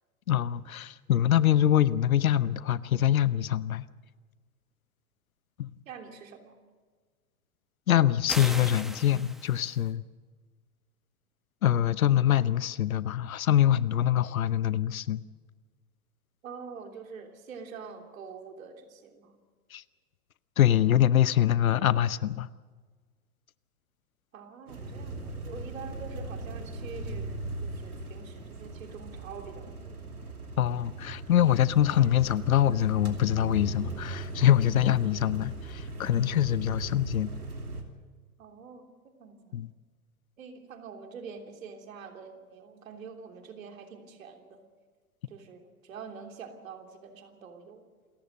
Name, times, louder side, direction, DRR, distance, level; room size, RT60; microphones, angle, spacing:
voice 1, 0.3-3.9 5.6-5.7 7.9-10.0 11.6-15.2 19.7-19.8 20.6-22.5 30.6-37.3 39.5-39.7, left 11 dB, 70° left, 18 dB, 0.9 m, -24 dB
voice 2, 5.8-6.6 16.4-19.3 24.3-30.0 38.4-39.6 40.4-44.6 45.3-47.8, right 5 dB, 65° right, 4 dB, 3.3 m, -45 dB
sound 1, 8.3-9.9, equal, ahead, 1.1 m, -39 dB
sound 2, 24.7-37.8, right 2 dB, 90° right, 2.8 m, -38 dB
28.0 x 15.0 x 6.6 m, 1.5 s
figure-of-eight pair, 100°, 43 cm